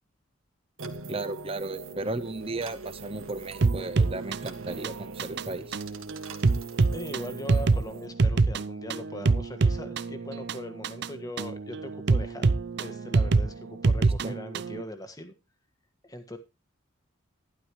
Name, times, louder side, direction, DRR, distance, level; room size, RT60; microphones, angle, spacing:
sound 1, 0.8-8.1, right 4 dB, 85° right, 1.7 m, -43 dB
voice 1, 1.1-5.7 14.0-14.3, right 2 dB, 30° right, 12 dB, 0.9 m, -35 dB
sound 2, 3.6-14.8, right 3 dB, 55° right, 0.6 m, -26 dB
voice 2, 6.9-15.3 16.0-16.4, equal, 20° left, 8 dB, 1.6 m, -40 dB
12.0 x 11.5 x 3.1 m, 0.26 s
head